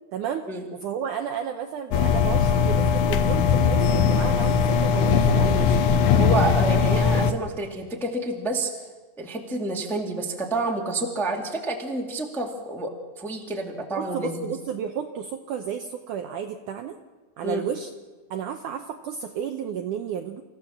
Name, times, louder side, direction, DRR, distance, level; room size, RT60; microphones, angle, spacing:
voice 1, 0.1-0.5 0.7-5.8 13.9-17.0 17.4-17.9 18.3-20.4, right 8 dB, 75° right, 5 dB, 1.9 m, -32 dB
sound 1, 1.9-7.3, left 6 dB, 70° left, 1.8 m, -20 dB
voice 2, 6.1-8.7 9.2-12.9 13.2-14.5 17.4-17.7, right 2 dB, ahead, 0 dB, 1.2 m, -28 dB
27.5 x 15.0 x 7.2 m, 1.3 s
omnidirectional pair, 4.5 m